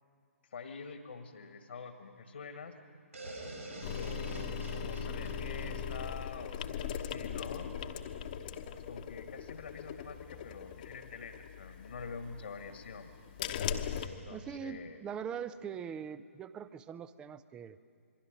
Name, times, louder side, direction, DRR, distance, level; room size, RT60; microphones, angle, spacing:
voice 1, 0.5-2.7 3.9-7.7 8.8-13.1 14.0-15.0, left 5 dB, 55° left, 7 dB, 1.7 m, -46 dB
sound 1, 3.1-6.9, right 2 dB, 75° right, 7.8 m, -46 dB
sound 2, 3.8-14.1, left 8 dB, 35° left, 1.1 m, -40 dB
voice 2, 14.3-17.8, right 7 dB, 10° right, 16 dB, 0.5 m, -42 dB
27.0 x 22.5 x 6.5 m, 2.4 s
figure-of-eight pair, 130°, 8 cm